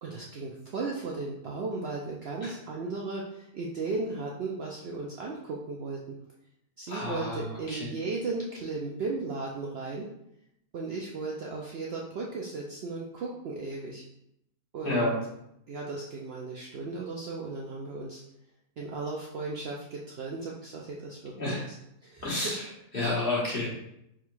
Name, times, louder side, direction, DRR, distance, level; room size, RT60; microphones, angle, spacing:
voice 1, 0.0-6.2 6.8-10.1 10.7-14.0 14.7-15.1 15.7-18.2 18.8-21.7 22.0-22.6, right 3 dB, 90° right, -2 dB, 0.5 m, -36 dB
voice 2, 6.9-7.9 14.8-15.2 21.4-21.6 22.2-22.7 22.9-23.7, left 2 dB, 40° left, -5 dB, 1.2 m, -30 dB
3.6 x 2.4 x 4.5 m, 0.80 s
omnidirectional pair, 1.7 m